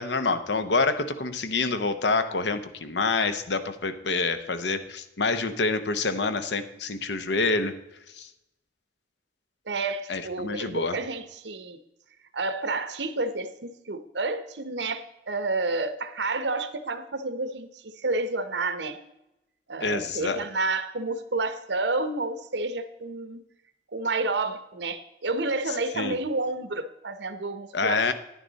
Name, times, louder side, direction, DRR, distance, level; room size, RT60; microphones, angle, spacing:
voice 1, 0.0-7.8 8.2-8.3 10.1-11.0 19.8-20.4 26.0-26.2 27.7-28.1, left 3 dB, 75° left, 11 dB, 0.8 m, -27 dB
voice 2, 9.7-11.8 12.3-19.0 19.7-23.4 23.9-28.1, right 3 dB, 75° right, 11 dB, 0.9 m, -30 dB
10.0 x 9.8 x 4.0 m, 0.89 s
head